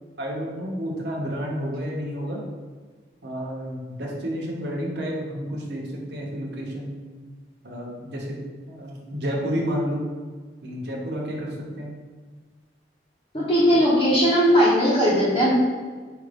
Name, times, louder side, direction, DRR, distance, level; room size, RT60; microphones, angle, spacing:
voice 1, 0.2-2.4 3.2-7.0 7.6-8.4 8.7-10.1 10.6-11.9, equal, 75° right, -2 dB, 0.9 m, -30 dB
voice 2, 13.3-15.5, equal, 30° left, -10 dB, 0.8 m, -18 dB
5.0 x 2.5 x 3.3 m, 1.5 s
head